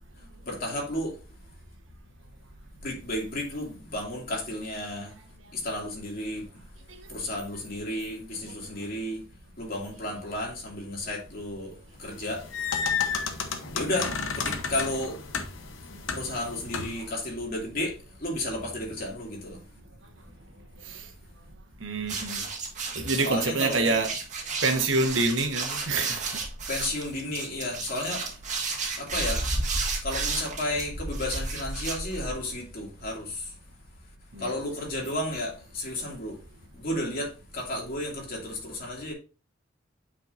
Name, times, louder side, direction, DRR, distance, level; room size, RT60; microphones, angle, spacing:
voice 1, 0.4-1.2 2.8-5.1 5.5-6.5 7.1-9.2 9.6-11.7 12.0-12.4 13.7-15.2 16.1-19.6 23.2-24.0 26.7-28.3 29.0-29.5 29.7-33.5 34.4-36.4 36.7-39.1, left 1 dB, 50° left, 2.6 m, -33 dB
sound 1, 12.1-17.1, left 5 dB, 70° left, 0.9 m, -32 dB
voice 2, 21.8-22.4 22.9-24.1 24.6-26.2 34.3-34.5, right 3 dB, 70° right, 1.4 m, -26 dB
sound 2, 22.0-32.5, right 3 dB, 40° right, 1.8 m, -32 dB
8.6 x 5.0 x 2.6 m
head